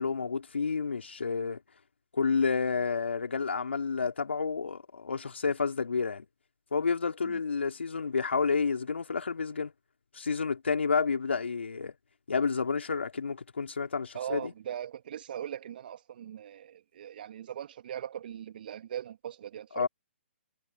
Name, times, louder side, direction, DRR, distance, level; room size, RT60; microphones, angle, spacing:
voice 1, 0.0-1.6 2.1-6.3 6.7-9.7 10.1-11.9 12.3-14.5 19.7-19.9, left 5 dB, 70° left, 3.9 m, -30 dB
voice 2, 14.1-19.9, right 10 dB, 50° right, 2.8 m, -40 dB
figure-of-eight pair, 130°, 7 cm